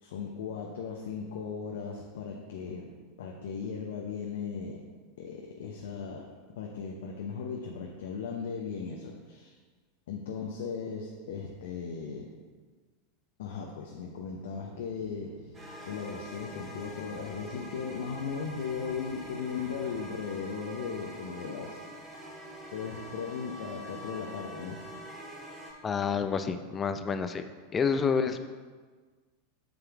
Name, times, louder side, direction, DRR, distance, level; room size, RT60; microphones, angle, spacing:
voice 1, 0.0-2.9 3.2-4.8 5.2-9.5 10.1-12.3 13.4-15.3 15.8-22.3 22.7-24.8, left 6 dB, 65° left, 0 dB, 0.8 m, -37 dB
sound 1, 14.1-20.1, right 3 dB, 85° right, 0.8 m, -52 dB
sound 2, 15.5-25.7, equal, 20° right, 2.4 m, -45 dB
voice 2, 25.8-27.5 27.7-28.4, left 6 dB, 25° left, 9 dB, 0.6 m, -28 dB
7.8 x 6.7 x 3.6 m, 1.4 s
figure-of-eight pair, 90°, 0 cm